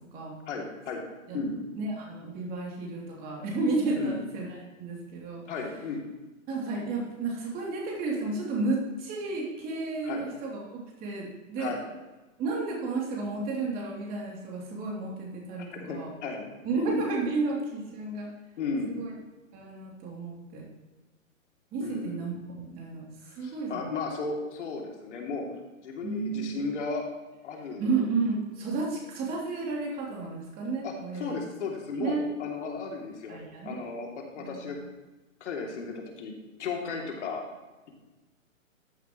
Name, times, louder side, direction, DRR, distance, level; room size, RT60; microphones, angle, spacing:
voice 1, 0.5-1.0 1.3-1.5 3.9-4.2 5.5-6.0 10.0-10.2 11.6-11.8 15.6-17.0 18.6-18.9 21.8-22.2 23.4-25.5 25.8-27.0 27.4-27.8 30.8-33.4 33.6-34.8 35.4-36.3 36.6-37.4, left 4 dB, 55° left, 0 dB, 2.8 m, -35 dB
voice 2, 1.7-4.5 4.8-5.4 6.5-11.7 12.4-16.1 16.6-18.3 18.9-19.1 19.5-20.6 21.7-23.9 26.0-26.7 27.8-31.4 32.0-32.3 33.3-33.8 34.4-34.7, right 3 dB, 20° right, -3 dB, 3.0 m, -32 dB
14.0 x 9.1 x 3.1 m, 1.2 s
hypercardioid pair, 140°, 41 cm